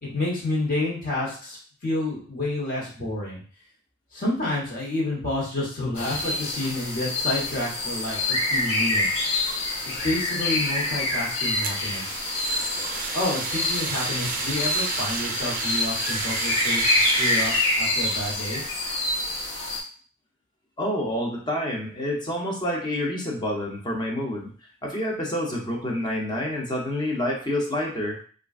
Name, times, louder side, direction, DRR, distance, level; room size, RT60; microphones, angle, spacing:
voice 1, 0.0-1.6 1.8-3.4 4.1-9.2 9.8-12.2 13.1-18.6, left 1 dB, 45° left, -5 dB, 1.2 m, -29 dB
sound 1, 6.0-19.8, left 2 dB, 65° left, 0.9 m, -26 dB
Fire, 11.6-17.8, right 5 dB, 45° right, 0.4 m, -31 dB
voice 2, 20.8-24.5 24.8-28.2, left 1 dB, 20° left, -1 dB, 0.7 m, -28 dB
3.6 x 2.4 x 2.4 m, 0.42 s
head